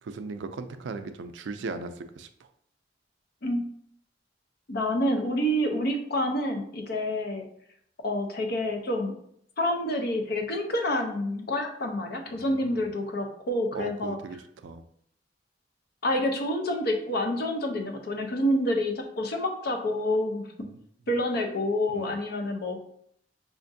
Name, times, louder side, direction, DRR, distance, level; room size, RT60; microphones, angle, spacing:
voice 1, 0.0-2.3 12.3-12.9 13.7-14.4 14.6-14.8 20.6-20.8 21.9-22.1, right 4 dB, 85° right, 10 dB, 0.4 m, -38 dB
voice 2, 4.7-7.4 8.0-9.1 9.6-14.2 16.0-20.5 21.1-22.8, left 1 dB, 60° left, 4 dB, 0.6 m, -28 dB
4.9 x 2.5 x 2.6 m, 0.68 s
head